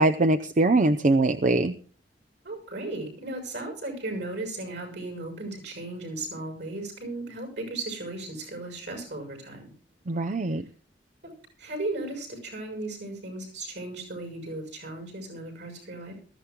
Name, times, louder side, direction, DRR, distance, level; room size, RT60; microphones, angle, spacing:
voice 1, 0.0-1.7 10.1-10.6, right 2 dB, 45° right, 8 dB, 0.6 m, -22 dB
voice 2, 2.4-9.7 11.6-16.2, right 2 dB, 70° right, 5 dB, 6.2 m, -36 dB
21.5 x 14.0 x 2.3 m, 0.41 s
head